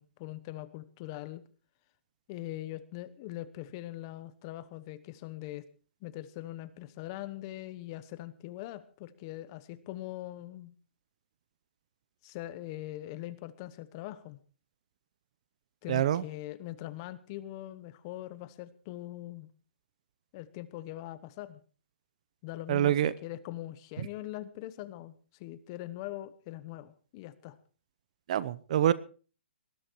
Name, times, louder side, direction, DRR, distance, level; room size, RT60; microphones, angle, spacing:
voice 1, 0.0-1.4 2.3-5.7 6.0-10.7 12.2-14.4 15.8-19.5 20.3-21.6 22.4-27.6, left 15 dB, 25° left, 14 dB, 1.0 m, -42 dB
voice 2, 15.9-16.2 22.7-23.1 28.3-28.9, right 11 dB, 35° right, 19 dB, 0.8 m, -26 dB
20.0 x 12.0 x 4.6 m, 0.39 s
hypercardioid pair, 170°, 6 cm